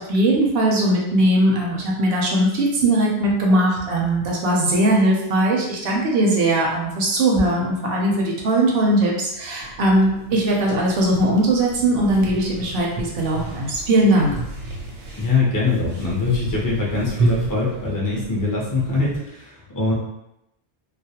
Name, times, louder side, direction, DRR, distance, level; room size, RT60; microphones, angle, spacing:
voice 1, 0.0-14.3, right 1 dB, 65° right, -2 dB, 0.7 m, -19 dB
sound 1, 9.6-19.2, right 2 dB, 80° right, 1.0 m, -31 dB
voice 2, 15.2-19.9, left 3 dB, 30° left, -4 dB, 0.4 m, -23 dB
2.3 x 2.0 x 2.8 m, 0.84 s
omnidirectional pair, 1.2 m